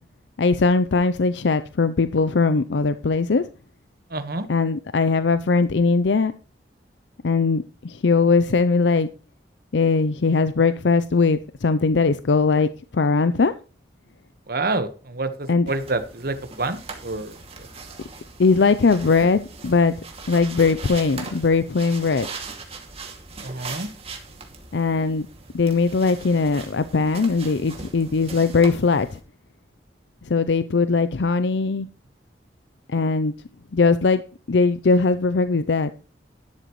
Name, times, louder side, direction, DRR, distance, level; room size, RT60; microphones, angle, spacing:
voice 1, 0.4-3.5 4.5-6.3 7.2-9.1 9.7-13.5 15.5-15.7 18.4-19.9 20.3-22.3 24.7-25.3 25.5-29.2 30.2-31.9 32.9-33.3 33.7-34.2 34.5-35.9, left 4 dB, 75° left, 12 dB, 0.6 m, -20 dB
voice 2, 4.1-4.5 14.5-17.3 23.4-23.9, right 3 dB, 55° right, 10 dB, 1.4 m, -28 dB
sound 1, 15.7-29.2, right 4 dB, 35° right, 2.3 m, -40 dB
12.0 x 11.5 x 3.1 m, 0.36 s
head